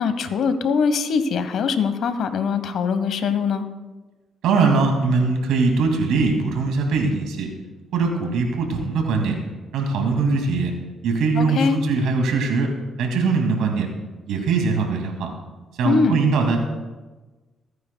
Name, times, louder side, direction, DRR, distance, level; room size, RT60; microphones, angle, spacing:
voice 1, 0.0-3.7 11.4-11.8 15.8-16.2, left 5 dB, 70° left, 10 dB, 1.0 m, -22 dB
voice 2, 4.4-7.5 7.9-9.3 9.7-10.7 11.0-12.7 13.0-13.9 14.3-15.3 15.8-16.6, right 4 dB, 85° right, 3 dB, 2.2 m, -21 dB
24.0 x 9.4 x 2.2 m, 1.2 s
cardioid pair, 90°, 0 cm